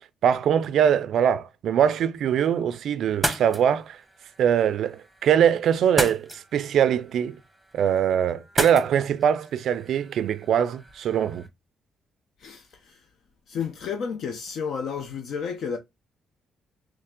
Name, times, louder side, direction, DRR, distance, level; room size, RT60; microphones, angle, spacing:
voice 1, 0.2-4.0 4.4-7.4 7.7-11.4, right 9 dB, 70° right, 0.3 m, -22 dB
sound 1, 3.1-11.5, right 1 dB, 5° right, 0.9 m, -35 dB
voice 2, 12.4-13.1 13.5-15.8, left 6 dB, 70° left, 0.5 m, -32 dB
3.2 x 3.2 x 3.6 m
cardioid pair, 90°, 0 cm